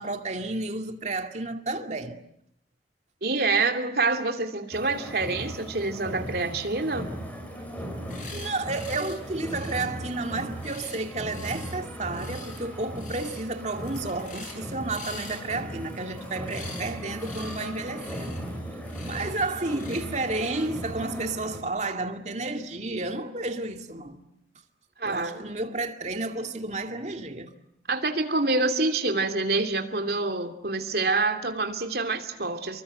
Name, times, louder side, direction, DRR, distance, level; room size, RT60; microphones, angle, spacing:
voice 1, 0.0-2.2 8.3-18.4 19.1-24.2 25.0-27.5, right 2 dB, 40° right, 2.3 m, -31 dB
voice 2, 3.2-7.1 25.0-25.4 27.9-32.8, right 3 dB, 55° right, 2.9 m, -26 dB
sound 1, 4.7-21.6, equal, 10° left, 5.2 m, -38 dB
sound 2, 7.9-8.5 8.7-9.2 9.5-11.8 12.1-12.6 13.0-13.4 13.7-14.6 14.9-16.9 17.2-17.7 18.0-18.4 18.8-19.3 19.7-20.0, left 4 dB, 45° left, 7.4 m, -44 dB
29.5 x 24.0 x 7.9 m
head